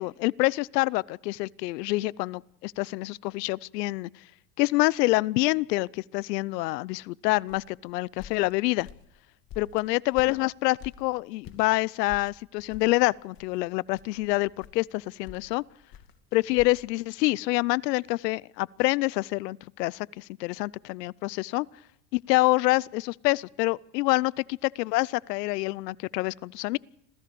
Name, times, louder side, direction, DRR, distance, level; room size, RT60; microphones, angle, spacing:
voice 1, 0.0-4.1 4.6-8.9 9.6-15.6 16.3-21.7 22.1-26.8, left 21 dB, 75° left, 0.7 m, -26 dB
sound 1, 7.5-11.7 12.1-16.8, left 8 dB, 45° left, 2.5 m, -48 dB
26.0 x 16.5 x 6.9 m
hypercardioid pair, 100°, 49 cm